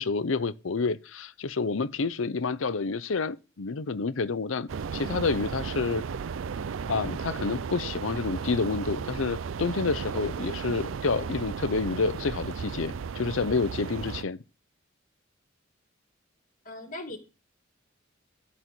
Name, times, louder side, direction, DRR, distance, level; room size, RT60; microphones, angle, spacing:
voice 1, 0.0-6.0 6.9-14.4, left 4 dB, 80° left, 0.7 m, -29 dB
sound 1, 4.7-14.2, right 6 dB, 75° right, 0.4 m, -35 dB
voice 2, 16.7-17.2, left 1 dB, 45° left, 2.2 m, -38 dB
12.5 x 4.3 x 7.7 m
head